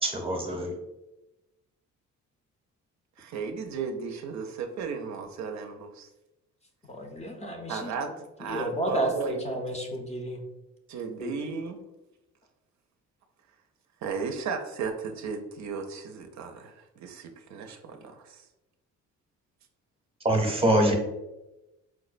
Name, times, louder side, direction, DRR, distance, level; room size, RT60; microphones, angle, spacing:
voice 1, 0.0-0.7 20.2-20.9, right 1 dB, 20° right, 2 dB, 0.7 m, -24 dB
voice 2, 3.2-6.1 7.7-8.1 8.4-9.4 10.9-11.8 14.0-18.5, right 5 dB, 65° right, 5 dB, 0.5 m, -35 dB
voice 3, 6.9-7.9 8.4-10.4 11.2-11.3, right 1 dB, 20° left, 2 dB, 0.5 m, -32 dB
4.6 x 2.0 x 2.4 m, 0.99 s
cardioid pair, 90°, 30 cm